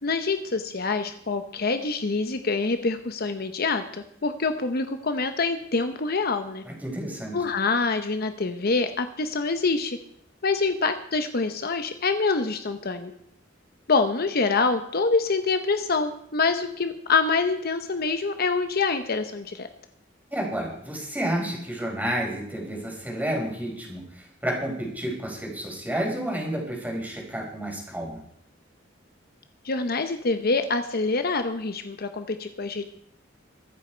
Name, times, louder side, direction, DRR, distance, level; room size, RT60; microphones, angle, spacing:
voice 1, 0.0-6.6 7.3-10.0 10.4-13.1 13.9-19.7 29.6-32.9, left 4 dB, 55° left, 8 dB, 0.9 m, -26 dB
voice 2, 6.6-7.3 20.3-28.2, right 1 dB, 10° right, -1 dB, 4.7 m, -30 dB
24.0 x 8.3 x 4.5 m, 0.69 s
head